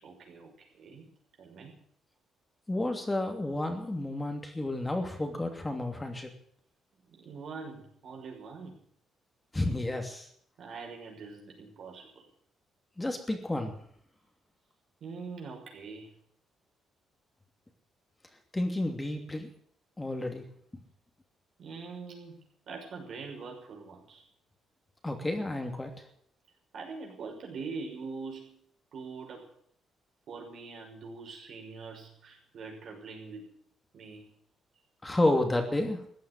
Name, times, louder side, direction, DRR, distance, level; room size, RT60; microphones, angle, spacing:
voice 1, 0.0-1.1 1.4-1.8 7.0-8.8 10.6-12.3 15.0-16.1 21.6-24.2 26.7-28.6 28.9-29.5 30.3-33.5 33.9-34.3, right 4 dB, 65° right, 1 dB, 6.0 m, -43 dB
voice 2, 2.7-6.3 9.5-10.3 13.0-13.7 18.5-19.5 20.0-20.4 25.0-25.9 35.0-36.0, left 1 dB, 15° left, 4 dB, 2.8 m, -31 dB
15.5 x 9.3 x 9.7 m, 0.65 s
cardioid pair, 90°, 0 cm